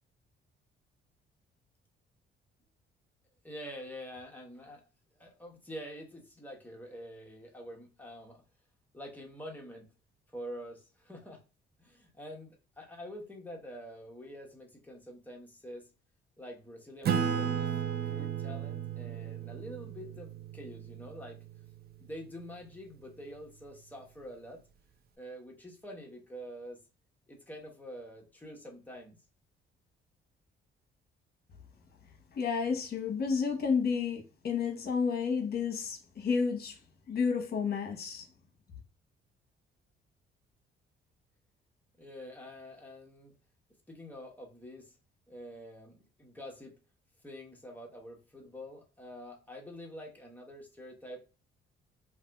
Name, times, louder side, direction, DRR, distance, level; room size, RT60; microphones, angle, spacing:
voice 1, 3.4-4.8 5.1-8.4 8.9-9.9 10.3-11.4 11.8-15.9 16.4-17.7 18.0-21.4 22.0-24.6 25.2-26.8 27.3-29.2 42.0-43.3 43.9-44.9 45.3-46.7 47.2-51.2, equal, 10° left, 1.1 m, -46 dB
Acoustic guitar / Strum, 17.0-22.0, right 8 dB, 55° right, 0.5 m, -34 dB
voice 2, 32.3-36.8 37.1-38.3, left 5 dB, 55° left, 1.0 m, -31 dB
2.6 x 2.5 x 3.4 m
cardioid pair, 90°, 20 cm